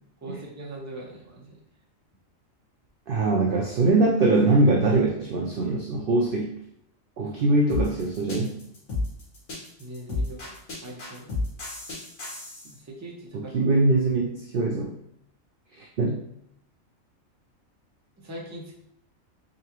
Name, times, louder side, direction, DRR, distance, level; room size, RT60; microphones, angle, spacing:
voice 1, 0.2-1.6 7.2-7.3 9.8-11.4 12.8-13.6 18.2-18.7, right 1 dB, 15° right, -3 dB, 0.6 m, -41 dB
voice 2, 3.1-6.5 7.2-8.6 13.3-14.9 15.7-16.2, right 2 dB, 60° right, 0 dB, 0.6 m, -22 dB
sound 1, 7.7-12.7, left 2 dB, 75° left, 1.8 m, -31 dB
3.9 x 3.3 x 3.0 m, 0.75 s
omnidirectional pair, 1.4 m